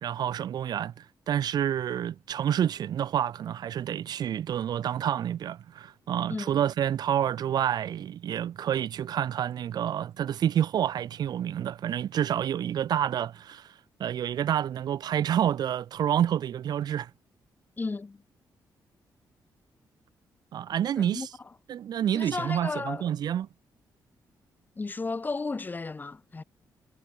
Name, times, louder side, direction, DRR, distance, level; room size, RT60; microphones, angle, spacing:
voice 1, 0.0-13.7 14.0-17.1 20.5-21.3 21.7-23.5, right 10 dB, 65° right, 0.7 m, -28 dB
voice 2, 6.3-6.6 17.8-18.2 21.0-21.5 22.1-23.1 24.8-26.4, left 3 dB, 25° left, 4.6 m, -34 dB
cardioid pair, 120°, 7 cm